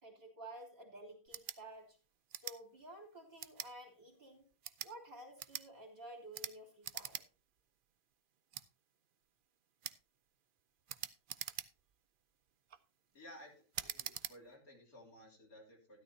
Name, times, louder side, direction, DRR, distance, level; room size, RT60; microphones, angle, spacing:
voice 1, 0.0-2.0 2.3-4.5 4.8-7.2, right 1 dB, 35° right, -1 dB, 3.2 m, -52 dB
sound 1, 1.3-1.6 2.3-2.6 3.4-3.7 4.5-4.9 5.4-5.7 6.3-6.5 6.8-7.3 7.6-7.7 8.5-8.7 9.8-10.0 10.9-11.9 12.5-12.8 13.7-14.4, right 9 dB, 60° right, 0.5 m, -44 dB
voice 2, 13.1-16.0, equal, 70° left, -1 dB, 3.6 m, -57 dB
13.5 x 12.5 x 2.8 m, 0.33 s
omnidirectional pair, 1.6 m